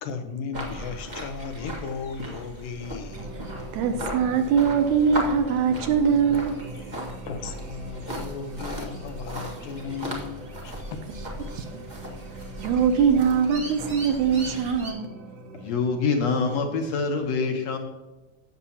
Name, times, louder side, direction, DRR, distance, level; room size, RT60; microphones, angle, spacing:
voice 1, 0.0-3.3 6.7-11.0, left 5 dB, 90° left, 7 dB, 2.5 m, -36 dB
sound 1, 0.5-14.9, equal, 50° right, 0.5 m, -37 dB
sound 2, 3.1-16.6, right 2 dB, 65° right, 1.7 m, -42 dB
voice 2, 3.7-6.6 11.5-11.8 12.6-15.2, right 6 dB, 80° right, 8 dB, 1.9 m, -22 dB
voice 3, 15.6-17.8, left 4 dB, 65° left, 4 dB, 1.9 m, -25 dB
16.0 x 7.0 x 2.8 m, 1.1 s
omnidirectional pair, 3.8 m